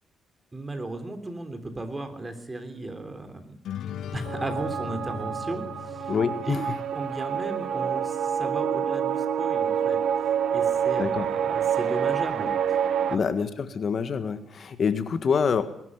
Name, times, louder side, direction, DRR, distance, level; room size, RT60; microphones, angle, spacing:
voice 1, 0.5-3.6 4.1-6.1 6.4-6.6 6.9-10.0 10.5-12.5 13.1-13.2, right 2 dB, 20° right, 9 dB, 3.5 m, -35 dB
sound 1, 3.6-7.3, left 9 dB, 75° left, 0.9 m, -39 dB
sound 2, 4.3-13.2, right 8 dB, 70° right, 1.1 m, -27 dB
voice 2, 6.1-6.7 11.0-11.3 13.1-15.6, left 6 dB, 50° left, 10 dB, 1.7 m, -26 dB
21.0 x 12.5 x 9.7 m, 0.72 s
cardioid pair, 90°, 0 cm